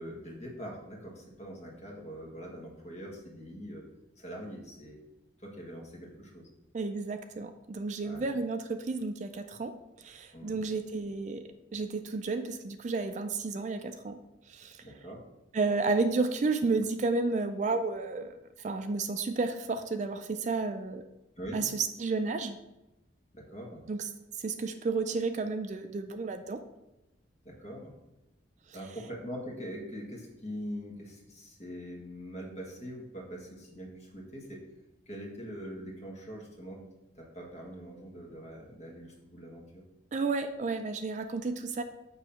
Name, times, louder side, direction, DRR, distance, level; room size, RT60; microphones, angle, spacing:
voice 1, 0.0-3.8 4.2-5.0 5.4-6.5 8.0-8.3 10.3-10.6 14.8-15.2 21.4-21.6 23.3-23.8 27.4-27.9 28.7-34.6 35.1-36.8 37.1-39.8, equal, 35° left, -1 dB, 1.4 m, -43 dB
voice 2, 6.7-11.4 11.7-14.2 14.5-14.8 15.5-21.0 21.5-22.6 23.9-24.1 24.4-26.6 28.7-28.8 40.1-41.8, right 3 dB, 40° right, 8 dB, 0.3 m, -32 dB
6.9 x 3.0 x 5.7 m, 0.96 s
head